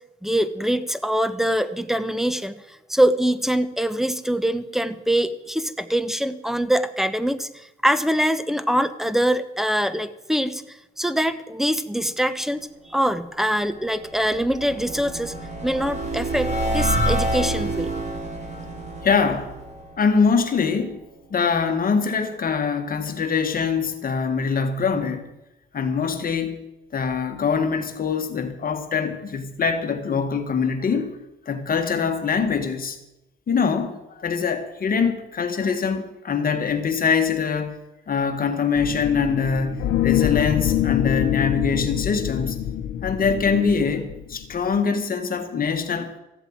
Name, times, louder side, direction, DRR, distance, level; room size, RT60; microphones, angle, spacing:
voice 1, 0.2-15.3 15.6-17.9, equal, ahead, 13 dB, 1.1 m, -24 dB
sound 1, 13.4-20.6, right 1 dB, 35° right, 3.6 m, -28 dB
voice 2, 19.0-19.6 20.0-21.0 21.3-25.3 25.7-26.6 26.9-31.2 31.5-33.0 33.5-37.8 38.1-42.6 43.0-46.1, left 5 dB, 45° left, 6 dB, 1.8 m, -23 dB
sound 2, 38.8-44.8, left 12 dB, 80° left, 0.9 m, -25 dB
14.5 x 8.1 x 8.8 m, 0.96 s
cardioid pair, 90°, 20 cm